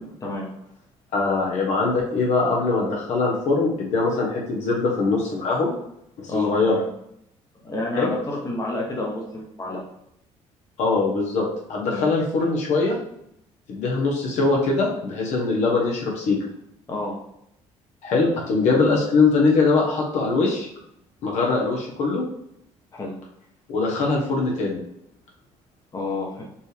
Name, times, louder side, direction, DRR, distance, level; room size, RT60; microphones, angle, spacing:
voice 1, 1.1-5.7 6.3-6.7 8.0-8.1 10.8-12.9 13.7-16.4 18.0-20.7 21.2-22.2 23.7-24.8, left 3 dB, 70° left, -2 dB, 1.3 m, -22 dB
voice 2, 6.3-6.8 7.6-9.8 11.9-12.0 16.9-17.1 22.9-23.1 25.9-26.4, left 2 dB, 30° left, -2 dB, 1.1 m, -29 dB
5.3 x 2.5 x 3.4 m, 0.77 s
cardioid pair, 100°, 12 cm